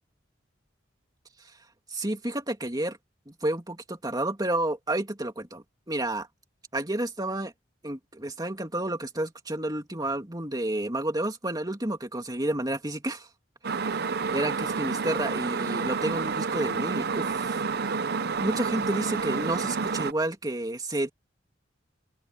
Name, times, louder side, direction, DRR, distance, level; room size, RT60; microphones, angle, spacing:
voice 1, 1.9-3.0 3.3-6.3 6.7-7.5 7.8-13.3 14.3-17.6 18.4-21.1, right 1 dB, 20° right, 2.9 m, -30 dB
sound 1, 13.6-20.1, right 5 dB, 55° right, 0.7 m, -29 dB
open air
head